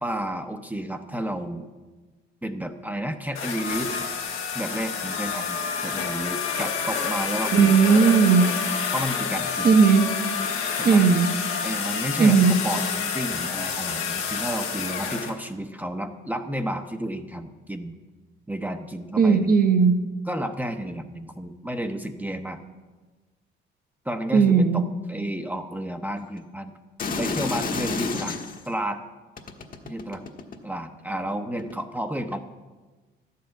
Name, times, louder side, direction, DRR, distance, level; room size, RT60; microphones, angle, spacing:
voice 1, 0.0-1.7 2.4-3.9 4.5-7.8 8.9-9.8 10.8-11.0 11.6-18.0 18.5-19.6 20.3-22.6 24.1-24.8 25.1-26.7 27.2-29.0 29.8-30.2 30.6-32.4, right 1 dB, 10° right, 6 dB, 0.7 m, -31 dB
sound 1, 3.3-15.3, left 6 dB, 85° left, 1.5 m, -28 dB
voice 2, 7.5-8.5 9.6-10.1 10.8-11.3 12.2-12.5 19.2-19.9 24.3-24.8, right 5 dB, 50° right, 9 dB, 1.0 m, -17 dB
sound 2, 27.0-28.7 29.4-30.8 31.6-31.7, left 4 dB, 45° left, 1.2 m, -30 dB
11.5 x 5.7 x 8.7 m, 1.3 s
cardioid pair, 90°, 20 cm